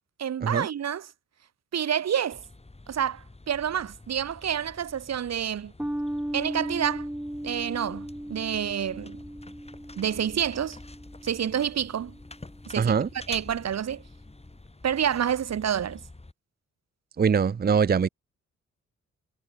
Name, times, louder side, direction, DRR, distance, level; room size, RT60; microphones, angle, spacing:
voice 1, 0.2-1.1 1.7-2.4 2.9-5.7 6.3-7.1 7.4-9.2 10.0-10.8 11.2-12.1 12.7-13.0 13.3-14.0 14.8-16.0, right 9 dB, 60° right, 1.1 m, -28 dB
sound 1, 2.3-16.3, left 2 dB, 20° left, 4.7 m, -48 dB
sound 2, 5.8-12.5, right 1 dB, 5° right, 3.3 m, -37 dB
voice 2, 12.8-13.1 17.2-18.1, right 6 dB, 30° right, 0.6 m, -22 dB
cardioid pair, 70°, 29 cm